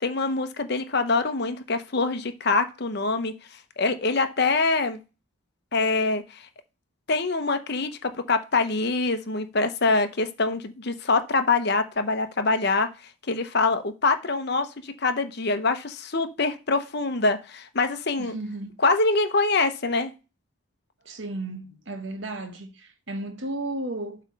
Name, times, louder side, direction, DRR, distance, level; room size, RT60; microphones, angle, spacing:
voice 1, 0.0-5.0 5.7-6.5 7.1-12.9 13.3-18.4 18.8-20.1, left 3 dB, 50° left, 0.8 m, -25 dB
voice 2, 18.2-18.7 21.0-24.2, right 2 dB, 60° right, 1.3 m, -34 dB
8.0 x 3.3 x 6.3 m
head